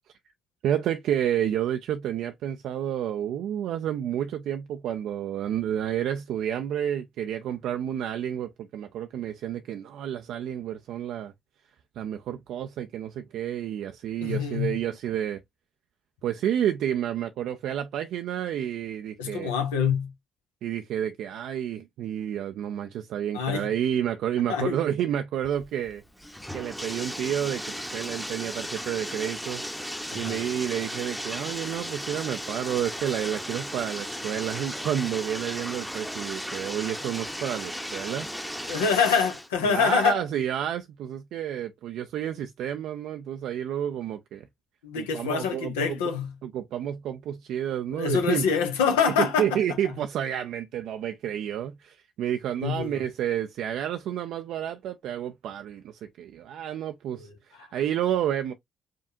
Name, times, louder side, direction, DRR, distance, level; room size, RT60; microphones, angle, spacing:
voice 1, 0.6-11.3 12.0-15.4 16.2-19.5 20.6-26.0 26.5-29.6 30.1-38.3 39.6-44.5 45.0-46.0 46.4-48.4 48.9-58.5, right 10 dB, 65° right, 0.3 m, -30 dB
voice 2, 14.2-14.8 19.2-20.1 23.3-23.7 24.5-24.8 30.2-30.4 38.7-40.2 44.8-46.3 47.9-49.5 52.6-53.0 57.2-57.3, left 6 dB, 80° left, 0.8 m, -25 dB
Bathtub (filling or washing), 25.4-39.5, equal, ahead, 0.8 m, -35 dB
5.0 x 2.4 x 2.6 m
hypercardioid pair, 40°, 0 cm